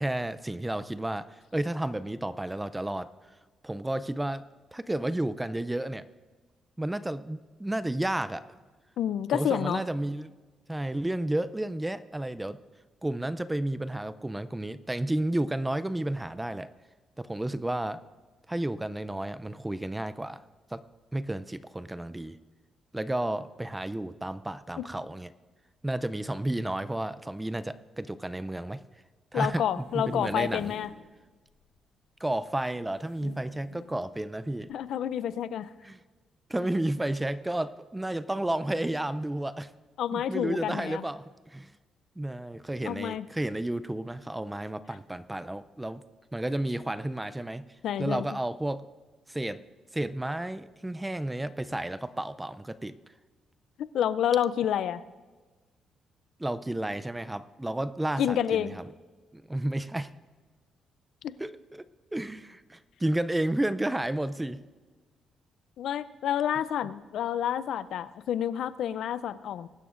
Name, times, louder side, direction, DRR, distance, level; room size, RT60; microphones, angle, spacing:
voice 1, 0.0-3.1 3.6-4.4 4.7-6.1 6.8-8.4 9.3-10.4 10.7-12.6 13.0-16.7 17.2-18.0 18.5-20.4 20.7-20.8 21.1-22.4 22.9-25.3 25.8-28.8 29.3-30.7 32.2-34.7 35.8-36.0 36.5-39.7 40.1-41.7 42.2-46.0 46.3-47.6 48.0-48.9 49.3-49.6 49.9-53.0 56.4-58.7 59.3-60.1 61.4-61.8 62.1-64.6, right 1 dB, 10° right, 15 dB, 0.5 m, -32 dB
voice 2, 9.0-9.8 24.8-24.9 29.3-30.9 34.7-35.7 40.0-41.0 42.8-43.3 47.8-48.3 53.8-55.0 58.2-58.8 61.2-61.3 65.8-69.7, left 10 dB, 75° left, 16 dB, 0.5 m, -29 dB
sound 1, 29.5-31.0 31.5-31.6 31.8-31.9 33.0-33.9 34.6-34.8, left 6 dB, 90° left, 1.1 m, -46 dB
22.0 x 12.0 x 2.5 m, 1.3 s
cardioid pair, 90°, 0 cm